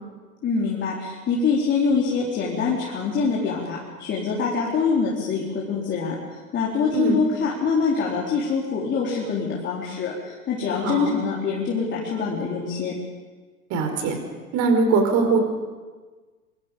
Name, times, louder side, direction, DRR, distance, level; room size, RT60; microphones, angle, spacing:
voice 1, 0.4-12.9, left 5 dB, 25° left, -4 dB, 4.1 m, -25 dB
voice 2, 10.8-11.1 13.7-14.1 14.5-15.4, right 4 dB, 35° right, 5 dB, 5.1 m, -21 dB
26.5 x 24.0 x 5.4 m, 1.4 s
figure-of-eight pair, 105°, 47 cm